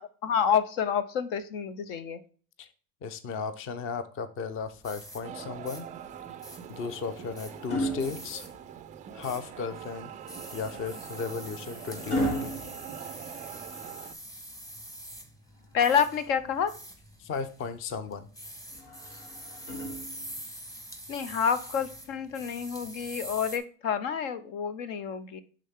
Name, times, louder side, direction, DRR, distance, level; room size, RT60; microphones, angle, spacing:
voice 1, 0.0-2.2 15.7-16.7 21.1-25.4, left 7 dB, 60° left, 14 dB, 0.9 m, -28 dB
voice 2, 3.0-5.9 6.7-8.4 9.1-10.1 10.5-12.5 17.2-18.3, left 5 dB, 30° left, 12 dB, 0.7 m, -35 dB
sound 1, 4.5-23.6, right 1 dB, 10° left, 1.1 m, -46 dB
sound 2, 5.2-14.1, right 9 dB, 20° right, 0.3 m, -44 dB
sound 3, 6.5-9.0 10.6-13.8 15.6-16.7 18.7-20.5 21.7-22.0, equal, 75° left, 2.3 m, -36 dB
10.0 x 3.8 x 3.6 m, 0.40 s
hypercardioid pair, 105°, 44 cm